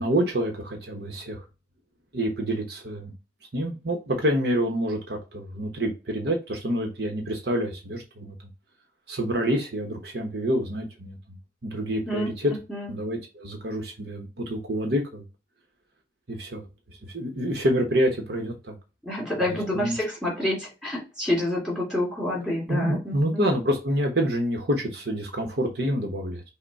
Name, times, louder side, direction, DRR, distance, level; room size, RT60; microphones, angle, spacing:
voice 1, 0.0-1.4 2.1-3.1 3.5-8.3 9.1-11.4 11.6-12.5 12.9-15.2 16.3-18.8 19.4-20.0 22.7-26.4, equal, 65° right, 1.0 m, -27 dB
voice 2, 19.0-23.4, left 1 dB, 5° right, 2.4 m, -28 dB
5.8 x 2.2 x 4.0 m
head